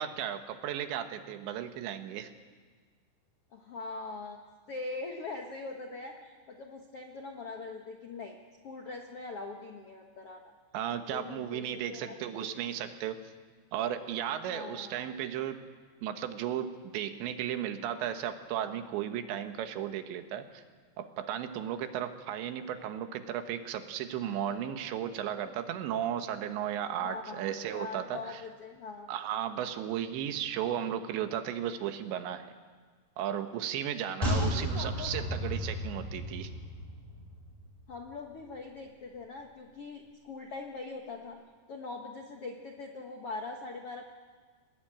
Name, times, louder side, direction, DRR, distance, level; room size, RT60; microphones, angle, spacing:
voice 1, 0.0-2.3 10.7-13.2 13.7-15.6 16.0-20.6 21.0-28.4 29.1-32.5 33.2-36.5, right 10 dB, 90° right, 8 dB, 3.6 m, -35 dB
voice 2, 3.5-4.4 4.7-8.4 8.6-10.4 11.1-12.6 14.4-14.9 27.0-29.1 34.3-35.3 37.9-41.4 41.7-44.0, left 3 dB, 80° left, 2 dB, 1.3 m, -42 dB
sound 1, 34.2-37.7 37.9-38.0, equal, 10° left, 7.0 m, -33 dB
23.5 x 19.5 x 8.9 m, 1.5 s
omnidirectional pair, 5.0 m